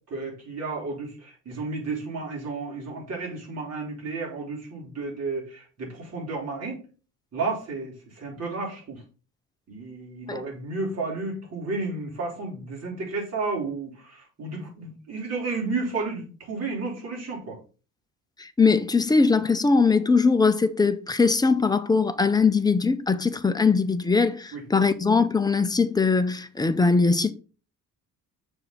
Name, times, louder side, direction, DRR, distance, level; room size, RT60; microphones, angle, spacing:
voice 1, 0.1-6.8 7.3-9.0 9.7-17.6 24.5-24.6, right 3 dB, 45° right, 4.0 m, -32 dB
voice 2, 18.4-27.3, left 4 dB, 10° left, 0.5 m, -21 dB
6.7 x 6.3 x 4.1 m
cardioid pair, 150°, 34 cm